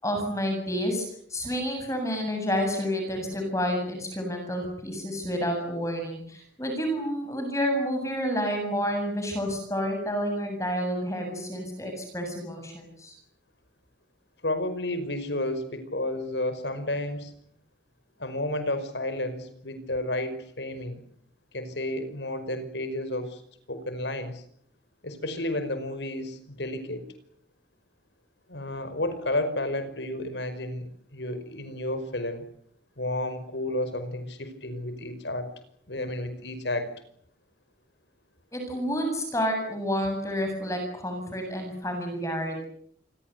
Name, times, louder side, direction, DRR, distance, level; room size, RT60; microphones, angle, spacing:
voice 1, 0.0-13.1 38.5-42.7, equal, 15° left, 4 dB, 7.7 m, -29 dB
voice 2, 14.4-17.3 18.2-21.0 21.5-23.4 23.7-24.4 25.0-27.0 28.5-32.5 33.0-35.5 35.9-36.9, left 1 dB, 80° left, 11 dB, 5.3 m, -31 dB
27.5 x 23.0 x 8.2 m, 0.66 s
head